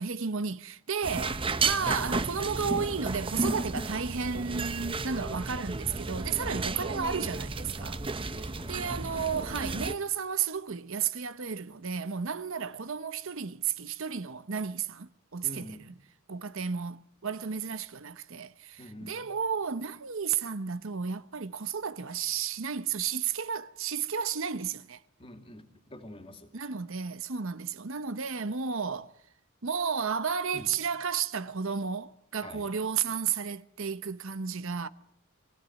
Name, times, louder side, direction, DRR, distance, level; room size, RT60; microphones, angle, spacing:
voice 1, 0.0-15.8 16.3-25.0 26.5-29.1 29.6-34.9, right 6 dB, 65° right, 0.9 m, -33 dB
sound 1, 1.0-9.9, right 3 dB, 25° right, 0.9 m, -33 dB
voice 2, 6.5-6.9 8.3-8.8 15.4-15.9 18.8-19.3 25.2-26.5 30.5-30.7 32.4-32.7, left 1 dB, 25° left, 2.6 m, -46 dB
24.5 x 17.0 x 9.3 m
head